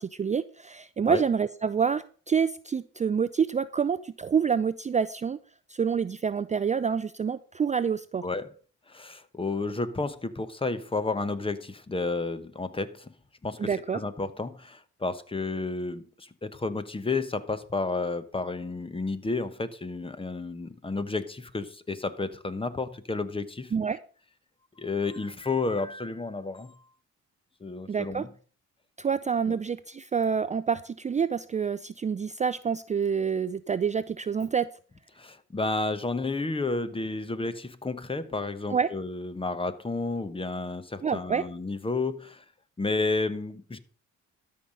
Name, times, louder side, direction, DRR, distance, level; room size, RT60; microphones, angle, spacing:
voice 1, 0.0-5.4 5.7-8.3 13.6-14.0 23.7-24.0 27.9-28.3 29.0-34.7 38.7-38.9 41.0-41.4, right 6 dB, 25° right, 0.4 m, -27 dB
voice 2, 8.9-13.1 13.4-23.7 24.8-26.8 27.6-28.3 29.5-29.6 35.2-42.4 42.8-43.8, left 3 dB, 20° left, 1.0 m, -31 dB
13.0 x 5.7 x 6.4 m
cardioid pair, 90°, 30 cm